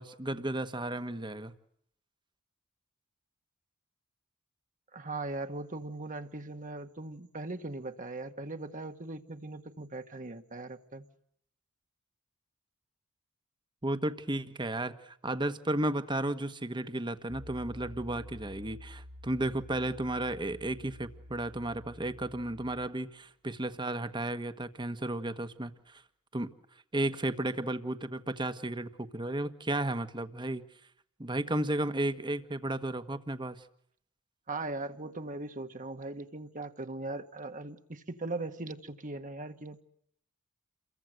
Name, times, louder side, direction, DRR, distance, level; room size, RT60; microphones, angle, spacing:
voice 1, 0.0-1.5 13.8-26.0 26.3-26.5 26.9-30.6 31.2-33.6, right 1 dB, 20° right, 1.4 m, -33 dB
voice 2, 4.9-11.0 34.5-39.8, right 2 dB, 40° right, 1.7 m, -39 dB
Piano, 17.3-22.9, left 1 dB, 85° right, 6.3 m, -49 dB
29.5 x 23.0 x 7.9 m
head